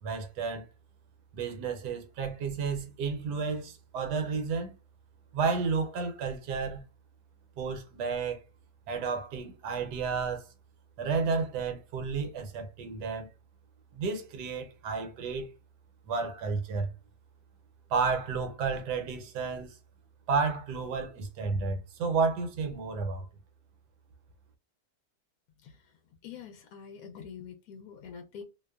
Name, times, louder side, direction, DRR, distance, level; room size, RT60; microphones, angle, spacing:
voice 1, 0.0-0.6 1.3-4.7 5.3-6.8 7.6-8.4 8.9-10.5 11.0-13.3 13.9-15.5 16.1-16.9 17.9-19.8 20.3-23.3, right 5 dB, 80° right, 1.2 m, -31 dB
voice 2, 26.2-28.4, left 7 dB, 70° left, 0.9 m, -45 dB
2.8 x 2.0 x 2.2 m
omnidirectional pair, 1.8 m